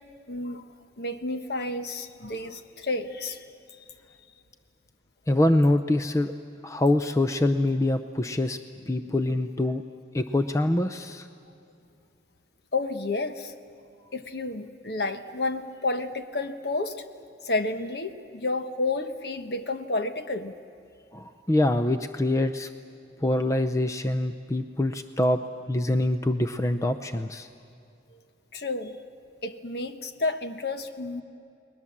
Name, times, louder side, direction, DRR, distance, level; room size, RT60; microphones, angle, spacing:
voice 1, 0.3-0.7 1.0-3.4 3.8-3.9 12.7-13.5 14.1-17.0 17.4-20.5 28.5-29.0 29.4-31.2, left 2 dB, 60° left, 8 dB, 1.2 m, -30 dB
voice 2, 5.3-6.3 6.6-8.6 8.9-9.8 10.1-11.3 21.1-22.7 23.2-25.4 25.7-27.5, left 1 dB, 15° left, 9 dB, 0.5 m, -24 dB
30.0 x 21.0 x 7.3 m, 2.5 s
head